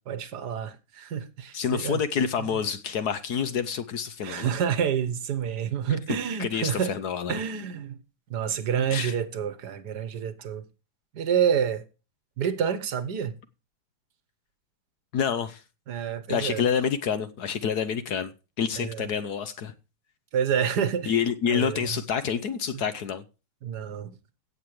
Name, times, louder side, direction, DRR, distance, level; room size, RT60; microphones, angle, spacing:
voice 1, 0.1-2.0 2.4-2.6 4.2-7.0 7.3-8.0 8.3-10.6 11.1-11.8 12.4-13.4 15.9-16.6 18.8-19.0 20.3-21.1 21.5-22.0 23.6-24.1, right 8 dB, 55° right, 1.5 m, -28 dB
voice 2, 1.5-4.5 6.1-7.3 8.9-9.1 15.1-15.6 16.3-18.3 18.6-19.7 21.1-23.2, left 7 dB, 60° left, 1.1 m, -28 dB
16.5 x 7.4 x 3.2 m
omnidirectional pair, 2.3 m